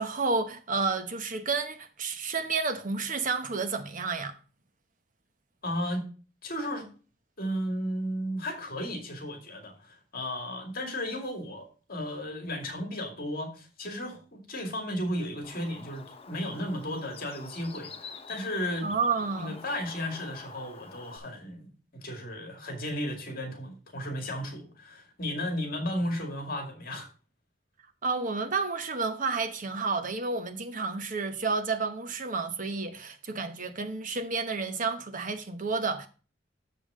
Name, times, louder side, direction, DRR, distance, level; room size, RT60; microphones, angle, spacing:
voice 1, 0.0-4.4 18.8-19.5 28.0-36.1, right 4 dB, 45° right, 1.0 m, -30 dB
voice 2, 5.6-6.1 6.4-6.9 7.4-18.9 19.4-27.1, equal, 50° left, 2.2 m, -34 dB
Bird, 15.4-21.2, left 5 dB, 30° left, 0.7 m, -47 dB
7.1 x 5.5 x 4.9 m
head